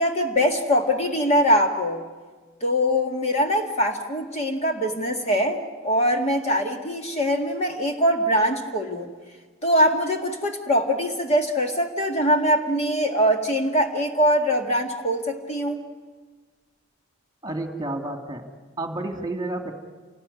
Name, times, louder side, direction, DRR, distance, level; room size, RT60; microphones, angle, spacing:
voice 1, 0.0-2.0 2.6-9.1 9.6-15.8, equal, 30° left, 3 dB, 1.9 m, -22 dB
voice 2, 17.4-18.4 18.8-19.7, right 2 dB, 15° right, 5 dB, 2.3 m, -30 dB
28.0 x 19.0 x 9.7 m, 1.4 s
head